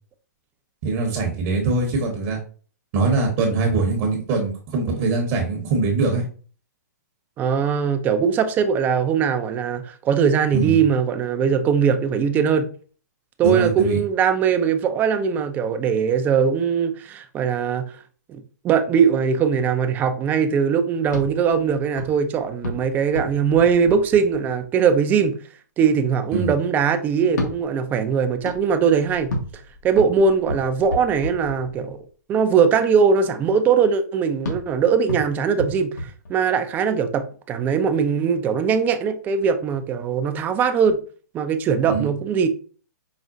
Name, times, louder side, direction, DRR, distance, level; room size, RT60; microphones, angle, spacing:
voice 1, 0.8-2.4 2.9-6.2 10.5-10.8 13.4-14.0 26.3-26.5 41.9-42.1, right 3 dB, 35° right, 0.8 m, -22 dB
voice 2, 7.4-12.6 13.4-17.8 18.3-25.3 25.8-29.3 29.8-32.0 32.3-41.0 41.3-42.5, right 6 dB, 20° right, 0.4 m, -20 dB
sound 1, 21.0-24.9 27.2-32.1 34.4-36.9, left 1 dB, 75° left, 1.3 m, -33 dB
4.9 x 2.0 x 2.6 m
hypercardioid pair, 135°, 10 cm